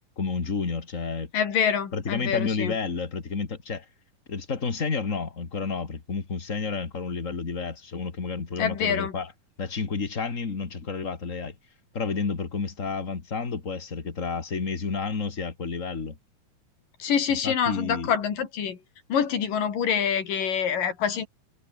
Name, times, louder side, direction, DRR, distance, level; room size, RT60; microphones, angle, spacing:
voice 1, 0.2-1.3 1.9-3.9 4.3-9.3 9.6-11.5 11.9-16.2 17.4-18.1, left 4 dB, 25° left, 2.2 m, -30 dB
voice 2, 1.3-2.7 8.6-9.1 17.0-18.8 19.1-21.3, left 7 dB, 75° left, 4.8 m, -26 dB
omnidirectional pair, 4.0 m